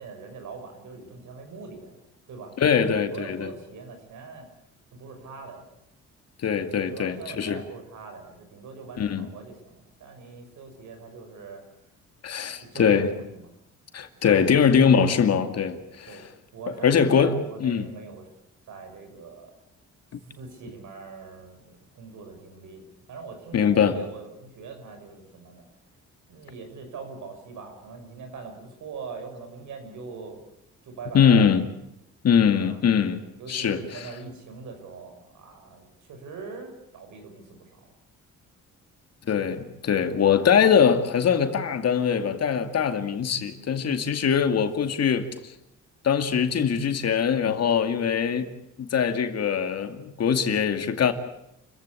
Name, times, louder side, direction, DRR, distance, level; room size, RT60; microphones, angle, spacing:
voice 1, 0.0-1.9 2.3-4.5 4.9-5.7 6.9-11.6 12.6-13.5 16.1-16.2 16.5-18.2 18.7-19.5 20.4-25.7 26.3-30.4 30.8-31.4 32.6-32.8 33.4-37.9, right 4 dB, 75° right, 6.2 m, -42 dB
voice 2, 2.6-3.5 6.4-7.6 9.0-9.3 12.2-13.1 13.9-16.3 16.8-17.3 17.6-17.9 23.5-24.0 31.1-31.6 32.2-34.1 39.3-45.5 46.0-48.5 48.8-51.1, left 7 dB, 55° left, 2.3 m, -22 dB
29.5 x 15.0 x 8.6 m
cardioid pair, 90°, 30 cm